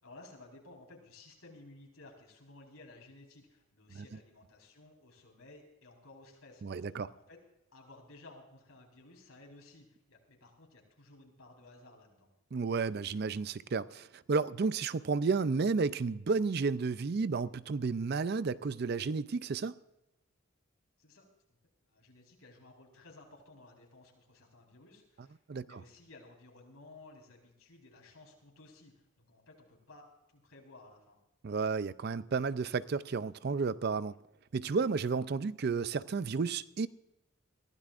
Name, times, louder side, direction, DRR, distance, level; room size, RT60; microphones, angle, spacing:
voice 1, 0.0-7.4 7.7-12.3 21.0-21.3 21.9-30.1 30.3-31.2, left 2 dB, 80° left, 4.3 m, -56 dB
voice 2, 6.6-7.1 12.5-19.7 25.5-25.8 31.4-34.1 34.5-36.9, right 4 dB, 50° right, 0.4 m, -32 dB
22.0 x 15.5 x 2.5 m
head